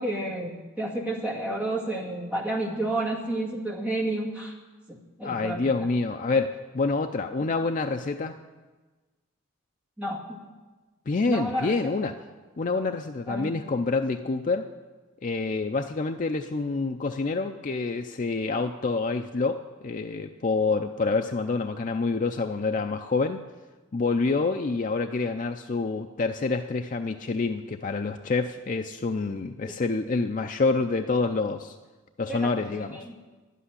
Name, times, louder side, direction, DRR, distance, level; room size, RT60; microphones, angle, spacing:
voice 1, 0.0-4.5 4.9-5.7 10.0-10.4 11.2-11.7 13.3-13.5 29.7-29.8 32.3-33.1, right 1 dB, 5° right, -4 dB, 1.9 m, -31 dB
voice 2, 5.2-8.4 11.1-12.2 12.6-14.7 15.2-23.4 23.9-31.8 32.2-33.0, left 3 dB, 35° left, 6 dB, 0.4 m, -27 dB
11.0 x 8.2 x 9.8 m, 1.3 s
head